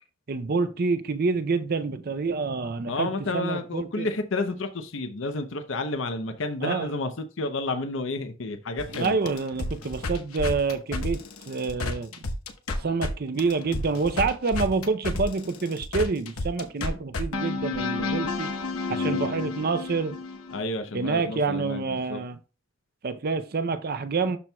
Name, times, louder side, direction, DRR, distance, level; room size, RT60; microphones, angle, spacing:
voice 1, 0.3-4.1 6.6-6.9 8.9-12.1 12.8-18.5 18.9-20.2 20.9-22.4 23.0-24.4, right 4 dB, 45° right, 0.5 m, -27 dB
voice 2, 2.9-9.2 18.9-19.4 20.5-22.2, left 2 dB, 60° left, 0.7 m, -31 dB
sound 1, 8.8-13.1 13.4-20.6, left 3 dB, 90° left, 0.9 m, -31 dB
12.0 x 4.4 x 2.2 m
head